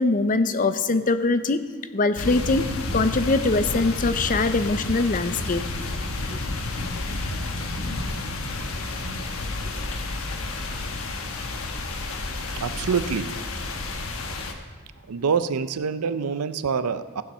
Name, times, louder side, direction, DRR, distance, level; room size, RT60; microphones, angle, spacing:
voice 1, 0.0-1.6 1.9-2.7 2.9-5.6, left 3 dB, 35° left, 11 dB, 0.5 m, -22 dB
sound 1, 2.1-14.5, left 2 dB, 65° left, 1.1 m, -30 dB
voice 2, 12.6-13.3 15.1-17.2, right 6 dB, 85° right, 13 dB, 0.5 m, -26 dB
15.5 x 7.0 x 5.5 m, 1.4 s
head